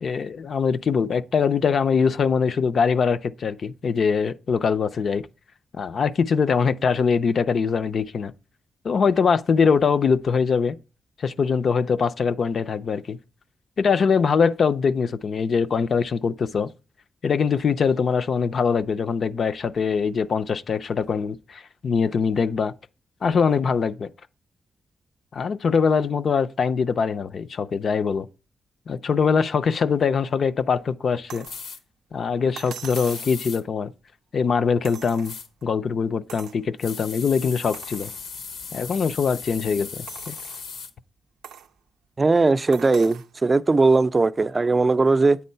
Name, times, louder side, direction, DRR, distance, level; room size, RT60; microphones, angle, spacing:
voice 1, 0.0-5.3 5.8-8.3 8.8-10.8 11.2-13.2 13.8-16.7 17.2-22.7 23.2-24.1 25.3-28.3 28.9-31.5 32.1-33.9 34.3-35.3 35.6-38.1 38.7-40.3, left 5 dB, 60° left, 0.5 m, -22 dB
sound 1, 31.3-31.6 32.6-33.4 34.8-35.6 36.3-36.6 37.1-37.2 37.7-38.2 38.8-38.9 40.1-40.7 41.4-41.7 42.7-43.3 44.6-44.7, right 8 dB, 90° right, 0.4 m, -42 dB
sound 2, 31.5-31.8 32.9-33.6 35.2-35.5 36.8-40.9, left 5 dB, 90° left, 0.9 m, -37 dB
voice 2, 42.2-45.4, right 3 dB, 30° right, 0.4 m, -19 dB
8.5 x 3.8 x 5.5 m
cardioid pair, 70°, 0 cm